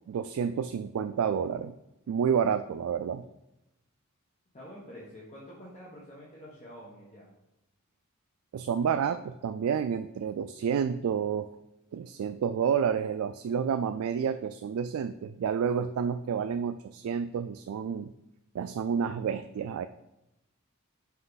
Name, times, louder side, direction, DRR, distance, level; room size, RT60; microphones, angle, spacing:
voice 1, 0.1-1.7 2.1-3.2 8.5-11.5 11.9-18.1 18.5-19.9, right 7 dB, 85° right, 9 dB, 0.3 m, -29 dB
voice 2, 4.5-7.3, equal, 30° left, -6 dB, 1.2 m, -47 dB
5.7 x 5.4 x 4.0 m, 0.88 s
head